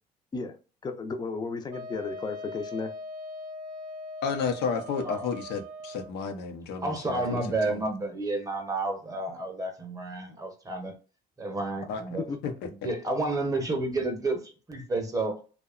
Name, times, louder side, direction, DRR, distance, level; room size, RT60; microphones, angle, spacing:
voice 1, 0.8-2.9 12.3-12.4, left 4 dB, 25° left, 6 dB, 0.4 m, -34 dB
Wind instrument woodwind instrument, 1.7-6.1, left 1 dB, 55° right, 0.5 m, -40 dB
voice 2, 4.2-7.4 7.7-7.8 11.9-12.5 12.8-12.9, left 6 dB, 85° left, 6 dB, 0.6 m, -32 dB
voice 3, 6.8-11.0 11.4-12.3 12.8-15.4, right 2 dB, 20° right, 4 dB, 0.7 m, -30 dB
2.7 x 2.1 x 2.3 m, 0.35 s
cardioid pair, 110°, 17 cm